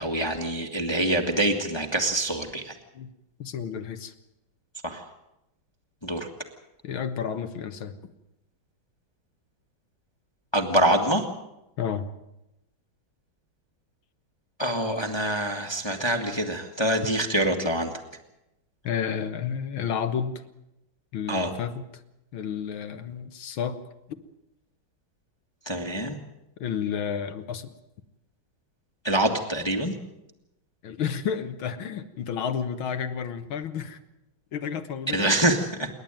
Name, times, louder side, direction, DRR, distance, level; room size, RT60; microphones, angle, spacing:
voice 1, 0.0-2.7 4.8-5.0 6.0-6.3 10.5-11.2 14.6-17.9 21.3-21.5 25.6-26.2 29.0-29.9 35.1-35.9, right 1 dB, 15° left, 4 dB, 1.6 m, -25 dB
voice 2, 3.4-4.1 6.8-8.0 11.8-12.1 18.8-20.4 21.1-22.0 22.3-23.8 24.1-24.2 26.6-27.7 30.8-34.0 34.5-35.3, left 7 dB, 80° left, 10 dB, 2.1 m, -31 dB
28.0 x 11.5 x 9.1 m, 0.89 s
omnidirectional pair, 2.2 m